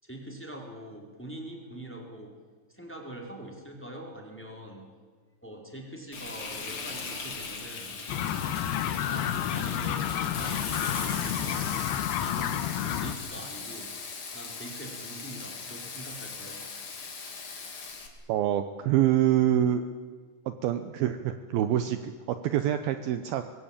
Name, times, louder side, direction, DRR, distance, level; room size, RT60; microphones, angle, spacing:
voice 1, 0.0-2.3 2.7-4.9 5.4-7.9 9.1-11.7 11.9-12.6 12.9-13.9 14.3-16.6, right 1 dB, 5° left, 1 dB, 3.8 m, -43 dB
Frying (food), 6.1-18.1, left 4 dB, 35° left, 2.9 m, -39 dB
sound 1, 8.1-13.1, left 10 dB, 75° left, 3.0 m, -30 dB
voice 2, 18.3-19.8 20.5-23.4, right 11 dB, 75° right, 9 dB, 2.5 m, -26 dB
24.5 x 21.0 x 8.9 m, 1.5 s
omnidirectional pair, 4.8 m